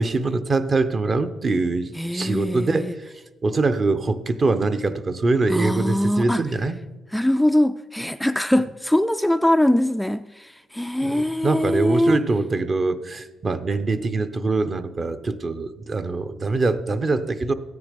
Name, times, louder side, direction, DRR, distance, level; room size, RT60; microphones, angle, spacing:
voice 1, 0.0-3.0 3.4-6.7 11.0-17.5, right 3 dB, 35° right, 0.8 m, -23 dB
voice 2, 2.0-2.9 5.5-6.4 7.1-12.2, left 1 dB, 5° left, 0.3 m, -22 dB
14.0 x 9.6 x 5.2 m
cardioid pair, 90°, 0 cm